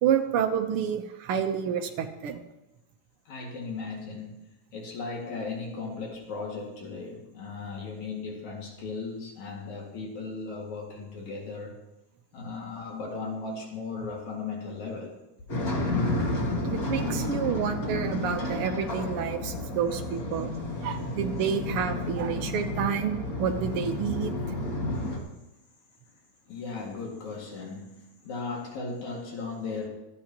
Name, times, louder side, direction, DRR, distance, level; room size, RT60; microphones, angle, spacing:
voice 1, 0.0-2.4 16.7-20.5 20.8-24.3, right 8 dB, 75° right, 5 dB, 1.3 m, -29 dB
voice 2, 3.3-4.3 4.7-11.8 12.3-15.2 26.5-29.9, left 4 dB, 65° left, -1 dB, 3.4 m, -37 dB
sound 1, 15.5-25.2, left 1 dB, 35° left, 1.9 m, -31 dB
25.0 x 8.5 x 3.0 m, 0.94 s
omnidirectional pair, 3.7 m